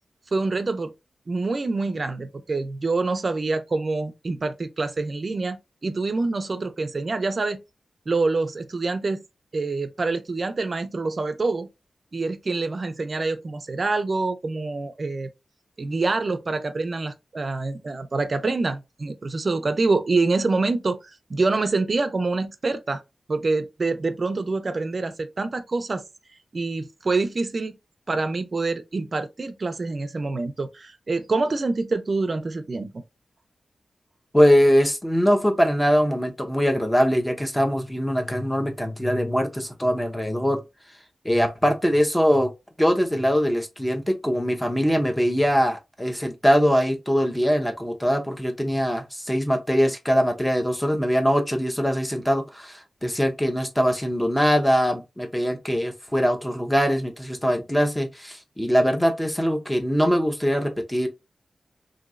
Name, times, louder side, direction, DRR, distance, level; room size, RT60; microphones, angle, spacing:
voice 1, 0.3-0.9 1.3-7.6 8.1-9.2 9.5-11.7 12.1-15.3 15.8-23.0 23.3-26.0 26.5-27.8 28.1-32.9, right 3 dB, 40° right, 0.4 m, -26 dB
voice 2, 34.3-40.6 41.2-42.5 42.8-61.1, equal, 10° left, 0.6 m, -22 dB
3.0 x 2.6 x 2.5 m
wide cardioid pair, 140°, 0 cm